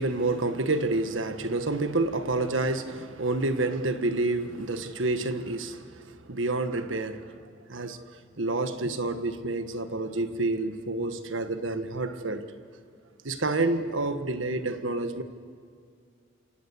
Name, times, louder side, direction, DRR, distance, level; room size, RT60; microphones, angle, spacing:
voice 1, 0.0-7.4 7.7-12.5 13.2-15.2, right 2 dB, 85° right, 1.5 m, -29 dB
27.5 x 27.0 x 7.2 m
head